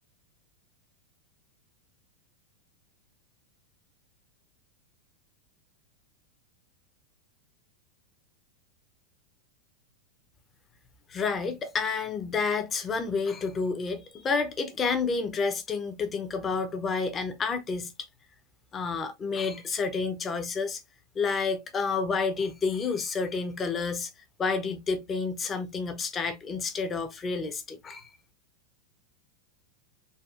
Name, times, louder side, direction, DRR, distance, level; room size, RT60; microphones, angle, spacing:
voice 1, 11.1-17.9 18.7-20.8 21.1-24.1 24.4-28.1, left 4 dB, 20° left, 0.8 m, -29 dB
4.2 x 2.7 x 2.4 m
figure-of-eight pair, 90°, 0 cm